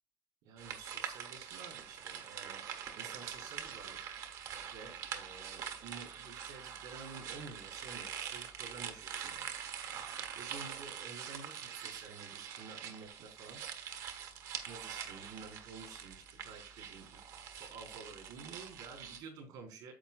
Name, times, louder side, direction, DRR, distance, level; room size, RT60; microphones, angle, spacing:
voice 1, 0.4-2.6 3.0-4.0 4.7-9.5 10.3-13.6 14.7-17.2 17.5-19.9, right 5 dB, 75° right, 2 dB, 4.6 m, -51 dB
sound 1, 0.6-19.2, right 8 dB, 55° right, 1.4 m, -44 dB
10.0 x 7.6 x 2.4 m, 0.32 s
cardioid pair, 180°, 7 cm